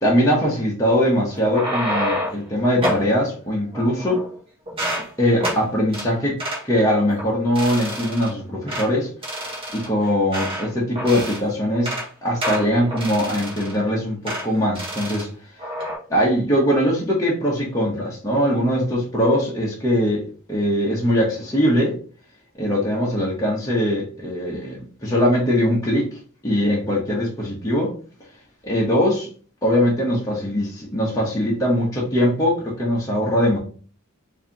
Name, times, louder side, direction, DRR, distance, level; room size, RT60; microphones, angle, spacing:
voice 1, 0.0-4.2 5.2-6.4 6.6-9.1 9.7-11.9 12.2-15.3 16.1-20.2 20.5-21.9 22.5-26.1 26.4-27.9 28.6-29.3 29.6-33.6, equal, 15° left, -5 dB, 0.9 m, -21 dB
sound 1, 1.3-2.4 2.8-3.1 3.7-4.4 4.7-5.1 5.4-5.6 5.9-6.1 6.4-6.6 7.1-7.3 7.6-8.3 8.7-8.9 9.2-10.7 11.0-11.4 11.7-12.1 12.4-13.8 14.3-14.5 14.8-15.3 15.6-16.0, equal, 25° right, 1.2 m, -28 dB
4.7 x 2.7 x 2.9 m, 0.41 s
head